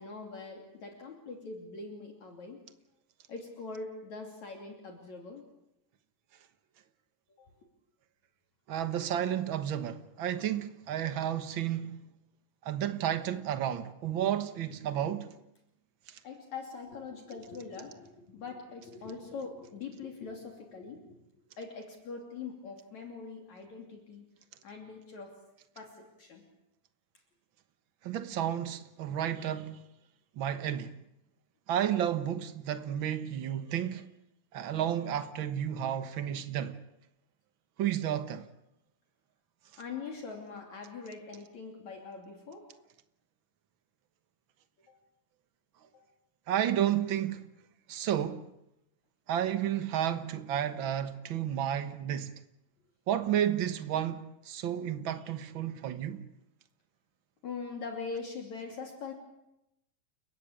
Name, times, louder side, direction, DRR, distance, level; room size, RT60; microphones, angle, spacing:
voice 1, 0.0-2.6 3.3-5.5 7.4-7.5 16.2-24.2 24.6-25.4 25.8-26.4 39.8-42.7 44.9-45.0 45.9-46.0 57.4-59.1, left 4 dB, 55° left, 4.0 m, -43 dB
voice 2, 8.7-12.0 12.6-15.3 16.1-16.2 28.0-29.8 30.4-30.9 31.7-34.0 34.5-36.8 37.8-38.5 46.5-47.4 47.9-48.5 49.3-52.3 53.1-56.2, right 10 dB, 60° right, 1.2 m, -32 dB
30.0 x 16.0 x 8.8 m
omnidirectional pair, 4.0 m